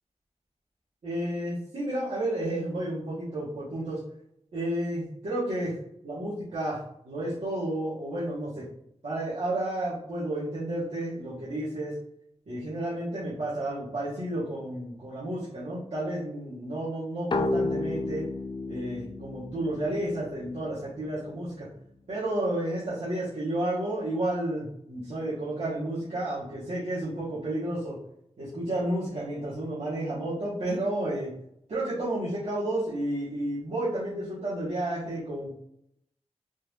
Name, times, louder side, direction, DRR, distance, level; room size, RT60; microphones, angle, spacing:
voice 1, 1.0-4.0 4.5-5.8 6.0-6.8 7.0-8.7 9.0-12.0 12.5-18.3 18.7-21.7 22.1-28.0 28.4-31.3 31.7-35.5, right 1 dB, 80° right, -11 dB, 1.5 m, -31 dB
sound 1, 17.3-20.8, left 2 dB, 45° left, 0.3 m, -32 dB
4.1 x 2.7 x 3.3 m, 0.73 s
wide cardioid pair, 75°, 11 cm